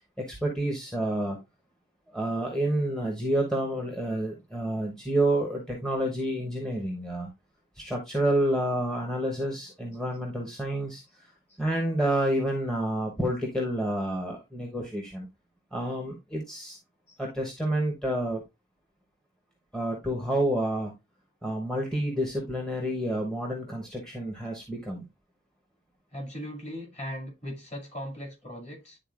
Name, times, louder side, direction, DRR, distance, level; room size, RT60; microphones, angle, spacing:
voice 1, 0.2-1.4 2.1-7.3 7.8-11.3 11.6-15.3 15.7-16.8 17.2-18.4 19.7-20.9 21.4-25.0, right 1 dB, 5° left, 0.9 m, -29 dB
voice 2, 26.1-29.0, equal, 35° left, 2.4 m, -39 dB
10.0 x 3.9 x 2.4 m
head